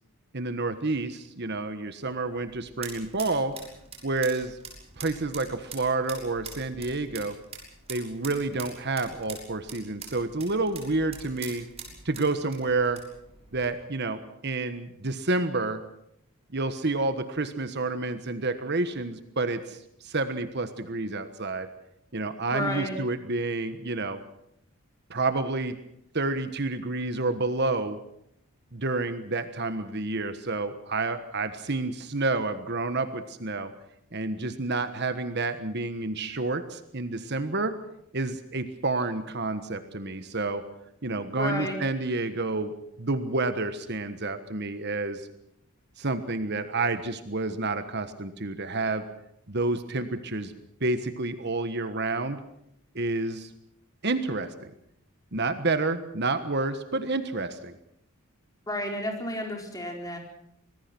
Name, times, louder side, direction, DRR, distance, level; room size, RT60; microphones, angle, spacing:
voice 1, 0.3-3.5 4.0-4.6 5.0-7.3 7.9-11.7 12.0-13.0 13.5-15.8 16.5-19.8 20.0-21.7 22.1-24.2 25.1-25.8 26.1-28.0 28.7-33.7 34.1-37.8 38.1-40.6 41.0-42.7 43.0-45.3 46.0-49.0 49.5-50.5 50.8-52.4 52.9-53.5 54.0-54.7 55.3-57.8, right 3 dB, 50° right, 10 dB, 1.4 m, -29 dB
sound 1, 2.1-13.7, right 5 dB, 30° right, 6.5 m, -45 dB
voice 2, 22.5-22.9 41.4-41.8 58.7-60.2, left 1 dB, 15° left, 2 dB, 4.5 m, -31 dB
26.0 x 20.0 x 6.1 m, 0.75 s
head